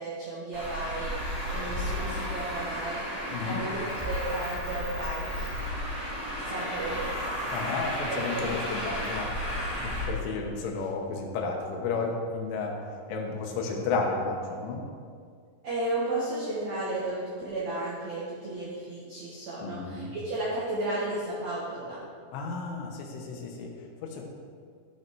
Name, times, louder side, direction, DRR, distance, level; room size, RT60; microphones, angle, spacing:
voice 1, 0.0-3.0 3.4-5.5 6.4-7.1 8.1-8.7 15.6-22.0, right 2 dB, 80° right, -8 dB, 1.6 m, -34 dB
Traffic noise roadway noise, 0.5-10.0, equal, 45° right, 0.5 m, -33 dB
voice 2, 3.3-3.6 7.5-9.3 9.8-12.8 13.1-14.8 19.6-20.1 22.3-23.7 24.0-24.3, left 4 dB, 80° left, 1 dB, 3.5 m, -32 dB
13.5 x 5.7 x 4.6 m, 2.2 s
omnidirectional pair, 5.6 m